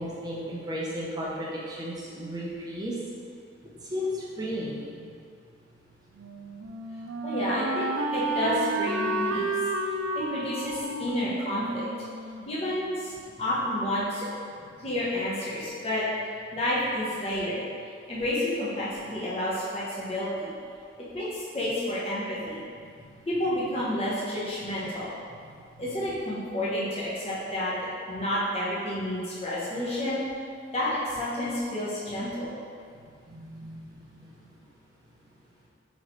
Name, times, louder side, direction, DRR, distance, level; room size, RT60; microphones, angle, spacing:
voice 1, 0.0-2.9 3.8-5.1 24.9-25.0 33.3-34.5, equal, 20° right, -6 dB, 0.6 m, -35 dB
Wind instrument woodwind instrument, 6.2-13.0, right 2 dB, 90° right, 0.3 m, -31 dB
voice 2, 7.2-7.9 8.1-9.5 10.1-11.9 12.5-14.3 14.8-16.0 16.5-17.6 18.1-20.5 21.1-22.6 23.3-25.1 25.8-27.7 28.1-30.2 30.7-32.5, left 1 dB, 30° left, -9 dB, 0.7 m, -30 dB
4.1 x 3.0 x 3.0 m, 2.3 s
head